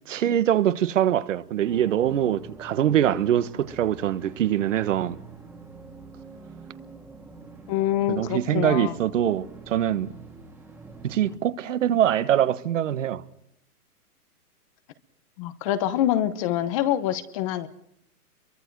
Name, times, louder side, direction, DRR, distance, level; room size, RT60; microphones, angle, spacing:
voice 1, 0.1-5.2 8.1-10.1 11.0-13.2, right 11 dB, 55° right, 1.4 m, -23 dB
sound 1, 1.6-11.4, right 3 dB, 5° right, 1.8 m, -46 dB
voice 2, 7.7-8.9 15.4-17.7, left 12 dB, 20° left, 0.9 m, -25 dB
29.0 x 23.5 x 4.7 m
hypercardioid pair, 155°, 46 cm